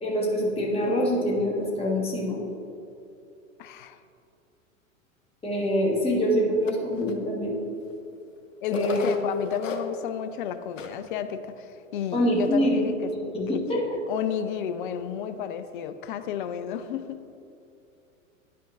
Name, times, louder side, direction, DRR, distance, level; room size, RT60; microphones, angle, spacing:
voice 1, 0.0-2.4 5.4-7.6 8.7-9.1 12.1-12.8 13.3-13.8, equal, 15° left, -3 dB, 1.4 m, -25 dB
voice 2, 3.6-4.0 8.6-13.1 13.5-17.2, left 9 dB, 40° left, 10 dB, 0.4 m, -32 dB
sound 1, 6.7-7.1 7.9-8.0 8.7-10.1 10.5-10.6 10.8-11.0 11.5-11.6 12.2-12.5, left 5 dB, 70° left, 0.8 m, -36 dB
10.0 x 5.7 x 2.5 m, 2.7 s
figure-of-eight pair, 95°, 40 cm